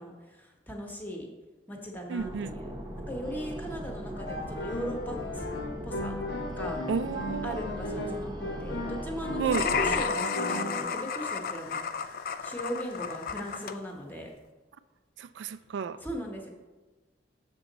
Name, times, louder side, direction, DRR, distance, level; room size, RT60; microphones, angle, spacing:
voice 1, 0.0-1.3 1.7-2.7 3.1-5.5 5.8-6.2 6.6-6.8 7.4-12.1 12.4-14.3 16.0-16.5, equal, 10° left, 1 dB, 1.0 m, -38 dB
voice 2, 2.1-2.5 6.9-7.6 9.4-9.7 15.2-16.0, right 6 dB, 80° right, 14 dB, 0.3 m, -31 dB
sound 1, 2.2-10.0, equal, 20° right, 0.7 m, -40 dB
sound 2, 4.0-10.8, left 1 dB, 80° left, 1.0 m, -36 dB
sound 3, 9.5-13.8, left 6 dB, 50° left, 0.3 m, -32 dB
7.0 x 6.2 x 3.9 m, 1.2 s
head